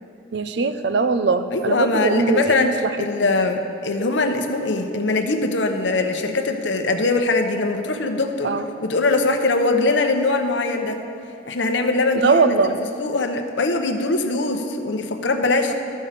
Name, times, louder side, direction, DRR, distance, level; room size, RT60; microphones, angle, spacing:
voice 1, 0.3-2.9 8.4-8.7 12.2-12.7 15.7-15.8, right 4 dB, 65° right, 10 dB, 0.5 m, -20 dB
voice 2, 1.5-2.7 3.0-8.5 8.8-11.0 11.4-12.6 13.0-15.7, left 3 dB, 80° left, 5 dB, 0.9 m, -22 dB
13.5 x 5.5 x 6.6 m, 2.7 s
head